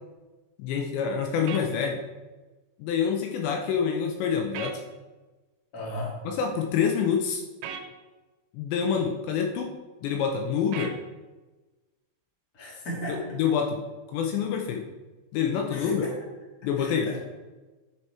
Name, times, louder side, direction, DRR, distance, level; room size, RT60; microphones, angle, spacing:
voice 1, 0.6-2.0 2.8-4.8 6.3-7.4 8.5-9.7 10.0-10.9 13.1-13.8 14.1-14.8 15.3-16.0 16.6-17.1, left 7 dB, 80° left, 2 dB, 2.7 m, -27 dB
sound 1, 1.5-1.7 4.5-4.8 7.6-7.9 10.7-11.0, right 7 dB, 85° right, 3.3 m, -36 dB
voice 2, 5.7-6.1 12.5-13.2 15.7-16.1 16.8-17.2, equal, 60° left, -4 dB, 0.9 m, -35 dB
9.8 x 4.8 x 4.3 m, 1.2 s
omnidirectional pair, 5.5 m